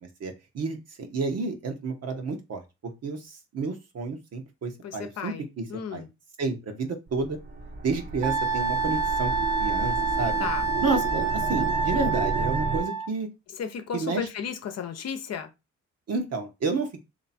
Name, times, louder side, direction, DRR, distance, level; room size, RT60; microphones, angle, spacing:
voice 1, 0.2-2.6 3.0-5.6 5.9-6.0 6.4-7.4 7.8-9.3 9.6-10.5 10.8-13.3 13.9-14.3 16.1-17.0, right 4 dB, 55° right, 1.2 m, -30 dB
voice 2, 4.8-6.1 10.4-10.7 13.5-15.5, left 7 dB, 55° left, 0.8 m, -34 dB
sound 1, 7.1-12.8, right 3 dB, 35° right, 0.9 m, -32 dB
Wind instrument woodwind instrument, 8.2-13.1, right 4 dB, 85° right, 0.9 m, -27 dB
3.3 x 2.9 x 4.2 m
cardioid pair, 90°, 30 cm